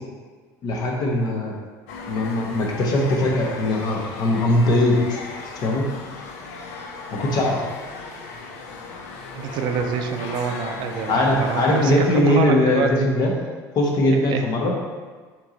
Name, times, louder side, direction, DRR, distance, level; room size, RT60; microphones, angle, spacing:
voice 1, 0.6-1.5 2.1-5.2 5.6-5.8 7.1-7.6 11.1-13.3 13.7-14.7, left 1 dB, 50° left, -1 dB, 1.0 m, -20 dB
sound 1, 1.9-12.4, left 3 dB, 85° left, 0.5 m, -36 dB
voice 2, 9.3-13.0 14.1-14.5, right 6 dB, 65° right, 5 dB, 0.4 m, -27 dB
4.4 x 3.0 x 3.8 m, 1.5 s
supercardioid pair, 90°, 8 cm